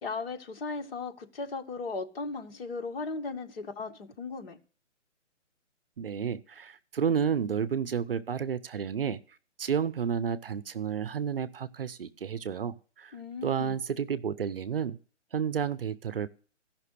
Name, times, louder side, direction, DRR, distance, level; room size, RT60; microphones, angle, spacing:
voice 1, 0.0-4.6 13.1-13.8, left 3 dB, 50° left, 1.8 m, -37 dB
voice 2, 6.0-9.2 9.6-13.2 13.4-15.0 15.3-16.3, right 7 dB, 50° right, 0.7 m, -31 dB
15.0 x 6.0 x 8.2 m
hypercardioid pair, 160°, 37 cm